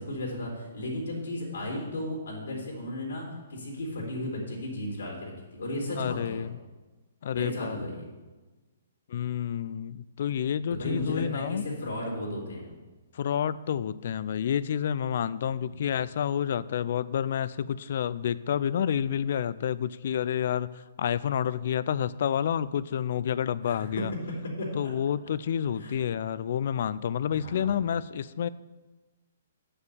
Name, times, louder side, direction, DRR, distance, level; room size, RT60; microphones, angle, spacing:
voice 1, 0.0-3.2 3.5-6.5 7.3-8.0 10.7-12.8 15.5-15.9 23.6-24.0 24.6-24.9 25.8-26.0 27.3-27.8, left 1 dB, 90° left, -3 dB, 3.4 m, -35 dB
voice 2, 6.0-6.6 7.2-7.8 9.1-11.7 13.1-24.1 24.7-28.5, left 9 dB, 55° left, 18 dB, 0.3 m, -29 dB
7.1 x 6.8 x 7.0 m, 1.2 s
hypercardioid pair, 155°, 0 cm